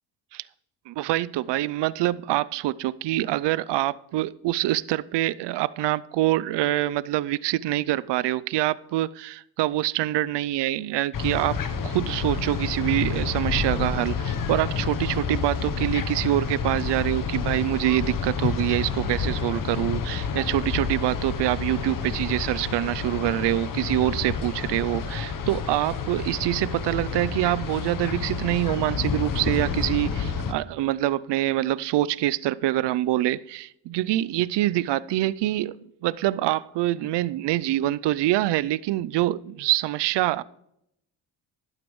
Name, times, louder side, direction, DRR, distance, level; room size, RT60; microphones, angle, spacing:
voice 1, 0.9-11.6 11.8-40.4, right 15 dB, 70° right, 0.5 m, -25 dB
sound 1, 11.1-30.5, left 6 dB, 50° left, 1.0 m, -29 dB
12.0 x 11.5 x 3.1 m
cardioid pair, 105°, 43 cm